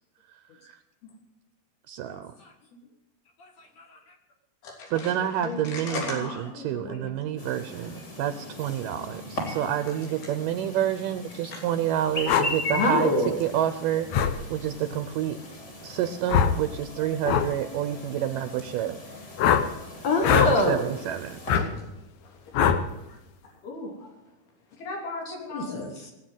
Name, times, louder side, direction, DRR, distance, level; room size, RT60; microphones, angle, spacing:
voice 1, 1.9-2.3 4.9-6.3 6.6-13.1 13.4-15.4 15.8-19.0 20.3-20.4 20.7-21.4, right 11 dB, 75° right, 10 dB, 2.1 m, -28 dB
voice 2, 3.4-4.1 12.7-13.4 13.8-14.0 20.0-20.9 25.3-26.1, left 2 dB, 50° left, 3 dB, 2.6 m, -26 dB
voice 3, 4.6-7.2 11.5-11.6 21.5-21.7 22.0-22.5 23.1-23.2 23.6-24.1 24.7-25.8, left 3 dB, 85° left, -1 dB, 5.0 m, -37 dB
Chirp tweet, 7.4-21.5, left 2 dB, 30° left, 3.5 m, -39 dB
sound 1, 12.3-12.5 14.1-14.3 16.3-16.6 17.2-17.5 19.4-19.7 20.2-20.5 21.5-21.6 22.5-22.8, left 8 dB, 70° left, 1.9 m, -21 dB
19.0 x 8.0 x 9.1 m, 0.95 s
omnidirectional pair, 4.3 m